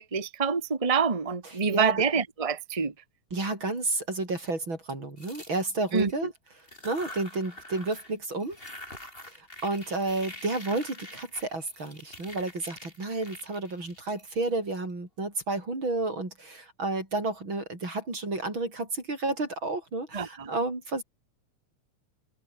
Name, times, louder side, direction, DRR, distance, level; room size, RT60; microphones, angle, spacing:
voice 1, 0.0-2.9 5.9-6.3 20.1-20.5, right 5 dB, 60° right, 0.3 m, -27 dB
voice 2, 1.5-2.0 3.3-6.3 6.8-8.6 9.3-21.0, right 2 dB, 40° right, 7.6 m, -31 dB
sound 1, 5.2-6.2 6.6-8.1 8.4-14.8, left 1 dB, 15° left, 8.0 m, -46 dB
omnidirectional pair, 3.4 m